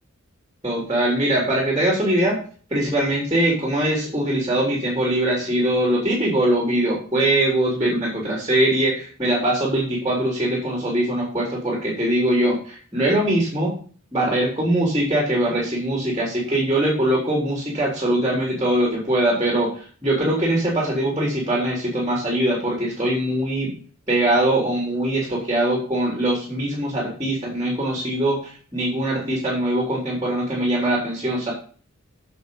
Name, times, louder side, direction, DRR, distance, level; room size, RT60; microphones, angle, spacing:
voice 1, 0.6-2.3 2.7-13.7 14.1-19.7 20.0-23.7 24.1-28.4 28.7-31.5, right 1 dB, 20° right, -3 dB, 3.8 m, -22 dB
9.7 x 7.0 x 5.5 m, 0.42 s
head